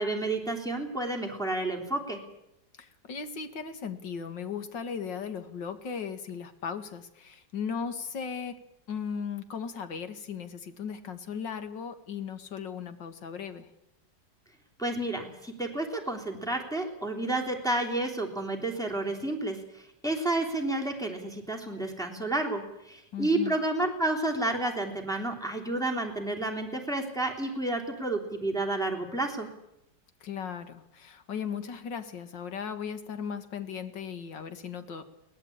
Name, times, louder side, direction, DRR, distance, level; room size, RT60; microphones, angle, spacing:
voice 1, 0.0-2.2 14.8-29.5, right 2 dB, ahead, 1 dB, 3.4 m, -30 dB
voice 2, 2.8-8.6 8.9-13.7 23.1-23.5 30.2-35.0, left 6 dB, 75° left, 9 dB, 2.4 m, -37 dB
22.5 x 18.0 x 8.7 m, 0.85 s
omnidirectional pair, 2.0 m